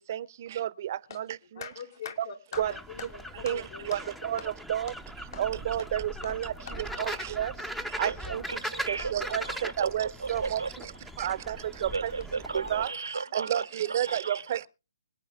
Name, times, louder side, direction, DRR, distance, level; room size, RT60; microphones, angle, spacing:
voice 1, 0.1-1.3 2.6-2.7 3.4-3.6 3.9-4.9 5.4-6.5 7.0-7.5 8.0-8.4 8.9-9.4 9.8-10.6 11.2-12.1 12.5-12.9 13.3-14.7, right 11 dB, 45° right, 0.8 m, -30 dB
voice 2, 1.5-4.0 5.3-5.6 6.2-6.3 6.6-7.2 7.7-8.1 8.8-9.0 11.3-11.4 12.9-13.0 13.3-13.4, left 6 dB, 60° left, 3.5 m, -43 dB
sound 1, 2.5-12.9, right 1 dB, ahead, 0.7 m, -40 dB
voice 3, 8.0-10.7 11.9-14.4, right 4 dB, 85° right, 1.0 m, -35 dB
25.0 x 9.3 x 3.6 m
hypercardioid pair, 145°, 2 cm